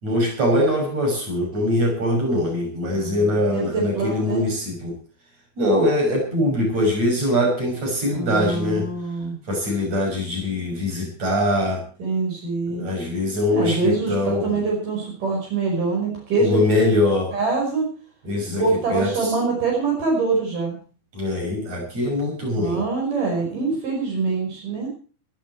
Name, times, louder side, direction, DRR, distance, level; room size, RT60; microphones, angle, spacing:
voice 1, 0.0-4.9 5.6-8.9 9.5-11.8 12.7-14.5 16.4-17.3 18.2-18.6 18.9-19.1 21.1-22.8, left 1 dB, 55° right, -1 dB, 7.8 m, -22 dB
voice 2, 2.8-4.4 8.1-9.4 12.0-12.8 13.5-16.6 17.3-17.9 18.6-20.8 22.6-24.9, right 3 dB, 90° right, -2 dB, 7.0 m, -24 dB
16.5 x 14.5 x 4.7 m, 0.39 s
omnidirectional pair, 3.6 m